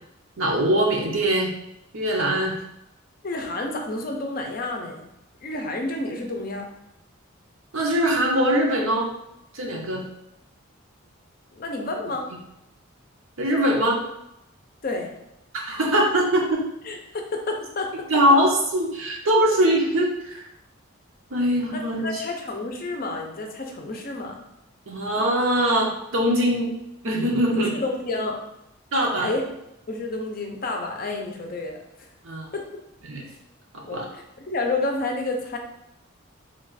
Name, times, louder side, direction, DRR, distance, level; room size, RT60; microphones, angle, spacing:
voice 1, 0.4-1.5 1.9-2.5 7.7-9.1 9.5-10.0 13.4-14.0 15.5-16.6 18.1-20.5 21.3-22.1 24.9-26.7 27.0-27.7 28.9-29.3 32.2-32.5 33.1-33.2 33.7-34.1, right 1 dB, 75° right, -1 dB, 0.8 m, -22 dB
voice 2, 3.2-5.1 5.4-6.7 11.5-12.3 14.8-15.1 16.8-18.2 21.7-24.4 27.5-28.4 29.2-29.4 29.9-31.8 32.5-32.8 33.9-35.6, left 2 dB, 40° left, 2 dB, 0.5 m, -30 dB
3.3 x 2.4 x 3.9 m, 0.85 s
head